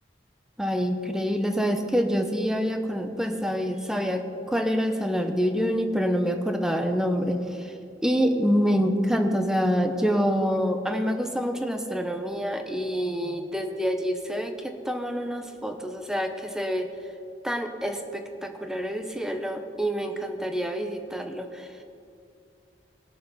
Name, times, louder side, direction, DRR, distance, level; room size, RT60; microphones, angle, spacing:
voice 1, 0.6-7.7 8.0-16.9 17.4-21.7, equal, 5° right, 5 dB, 0.9 m, -26 dB
19.5 x 6.5 x 5.6 m, 2.5 s
head